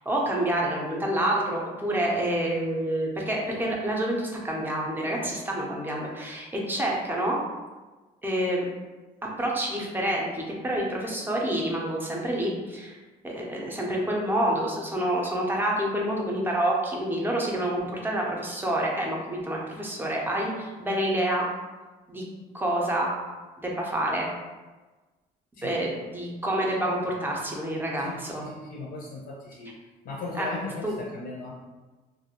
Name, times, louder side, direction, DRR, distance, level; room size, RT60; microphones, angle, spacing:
voice 1, 0.0-7.4 8.2-8.7 9.4-13.0 13.2-21.5 22.1-22.2 22.5-23.1 23.6-24.3 25.6-28.4 30.4-30.5 30.8-30.9, right 1 dB, 10° right, -2 dB, 0.5 m, -28 dB
voice 2, 28.0-29.7 30.0-31.5, left 3 dB, 55° left, -3 dB, 0.5 m, -37 dB
2.3 x 2.1 x 2.8 m, 1.2 s
cardioid pair, 110°, 17 cm